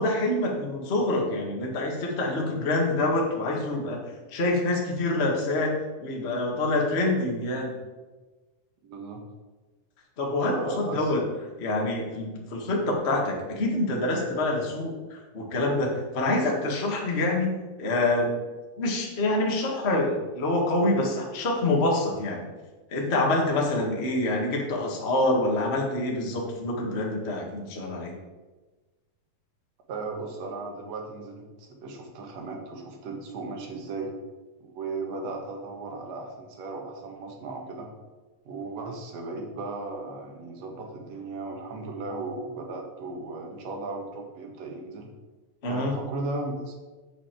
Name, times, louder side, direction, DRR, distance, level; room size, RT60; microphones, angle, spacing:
voice 1, 0.0-4.0 4.3-5.7 6.0-7.7 10.2-11.2 11.6-18.4 18.8-22.5 22.9-28.1 45.6-45.9, left 2 dB, 45° left, -1 dB, 0.8 m, -26 dB
voice 2, 8.8-9.2 10.5-11.3 29.9-34.1 34.6-37.9 38.5-45.1 45.7-46.8, right 3 dB, 55° right, 2 dB, 2.3 m, -36 dB
8.5 x 5.4 x 7.5 m, 1.2 s
omnidirectional pair, 4.2 m